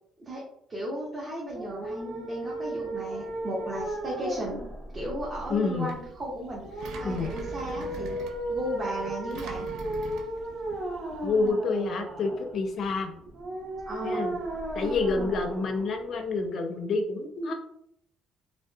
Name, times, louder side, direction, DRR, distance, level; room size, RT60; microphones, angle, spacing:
voice 1, 0.7-4.6 4.9-8.2 8.5-9.7 13.9-14.2, equal, 25° right, -4 dB, 0.5 m, -35 dB
sound 1, 1.5-16.5, right 1 dB, 50° right, 0.8 m, -36 dB
Engine, 5.4-11.5, right 3 dB, 75° right, 0.3 m, -43 dB
voice 2, 5.5-5.9 7.0-7.3 11.2-13.1 14.0-14.3 14.7-17.5, left 3 dB, 50° left, 4 dB, 0.4 m, -28 dB
2.6 x 2.1 x 2.2 m, 0.72 s
cardioid pair, 140°, 0 cm